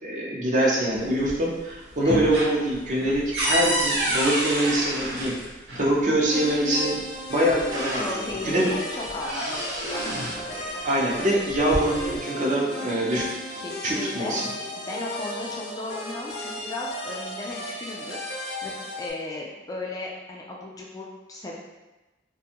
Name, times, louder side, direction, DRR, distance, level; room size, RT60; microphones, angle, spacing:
voice 1, 0.0-5.3 5.8-7.0 7.3-8.7 10.8-13.3 13.8-14.5, right 1 dB, 45° right, -3 dB, 0.6 m, -24 dB
sound 1, 0.9-1.6 1.9-5.9 7.0-7.1 7.5-8.4 8.8-10.5 11.4-12.2, right 1 dB, 90° right, 0.8 m, -29 dB
sound 2, 6.3-19.1, left 1 dB, 65° left, 0.6 m, -35 dB
voice 2, 8.0-10.8 13.5-14.4 14.8-21.6, left 2 dB, 20° left, -3 dB, 0.3 m, -36 dB
2.5 x 2.2 x 2.8 m, 1.1 s
head